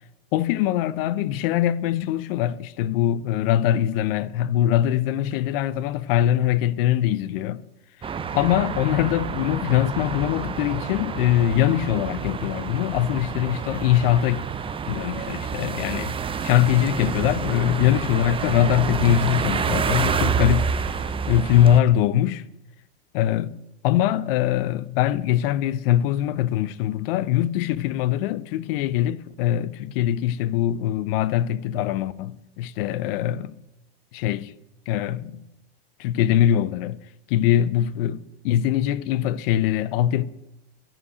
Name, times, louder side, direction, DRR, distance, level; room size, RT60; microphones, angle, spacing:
voice 1, 0.3-7.6 8.3-14.5 14.9-16.1 16.4-20.8 21.3-22.4 23.1-33.5 34.1-34.5 34.9-35.4 36.0-37.0 37.3-40.2, left 11 dB, 65° left, 0.6 m, -22 dB
sound 1, 8.0-21.8, right 6 dB, 15° right, 0.7 m, -28 dB
12.0 x 5.7 x 7.9 m
hypercardioid pair, 100°, 31 cm